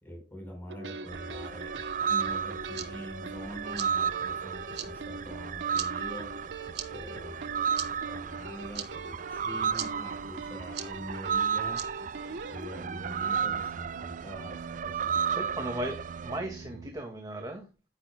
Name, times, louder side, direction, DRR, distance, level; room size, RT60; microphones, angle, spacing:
voice 1, 0.0-1.8 2.1-6.4 6.9-11.8 12.5-15.5, equal, 10° left, 4.3 m, -44 dB
race in space, 0.7-16.9, right 3 dB, 85° right, 0.9 m, -43 dB
sound 1, 1.1-16.4, right 7 dB, 45° right, 0.4 m, -33 dB
sound 2, 2.4-12.6, right 10 dB, 65° right, 1.5 m, -45 dB
voice 2, 15.3-16.0 16.2-17.7, right 1 dB, 20° right, 1.8 m, -36 dB
10.5 x 10.5 x 2.2 m
head